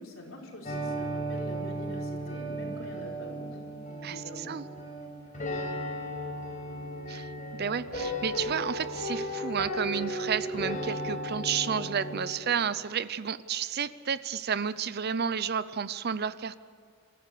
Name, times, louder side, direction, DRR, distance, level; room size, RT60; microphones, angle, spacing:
voice 1, 0.0-4.5, left 1 dB, 70° left, -1 dB, 4.7 m, -44 dB
sound 1, 0.6-12.3, equal, 40° left, 4.8 m, -35 dB
voice 2, 4.0-4.7 7.1-16.6, right 7 dB, 50° right, 16 dB, 0.6 m, -31 dB
27.0 x 14.5 x 6.8 m, 2.1 s
head